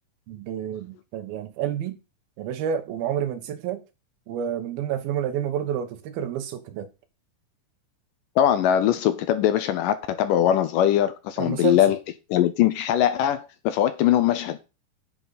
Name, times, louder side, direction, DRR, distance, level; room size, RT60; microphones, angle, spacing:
voice 1, 0.3-1.9 2.4-3.8 4.3-6.9 11.4-11.8, right 9 dB, 85° right, 3.1 m, -29 dB
voice 2, 8.4-12.0 12.3-14.6, left 11 dB, 75° left, 2.2 m, -21 dB
10.0 x 6.9 x 4.1 m
omnidirectional pair, 4.2 m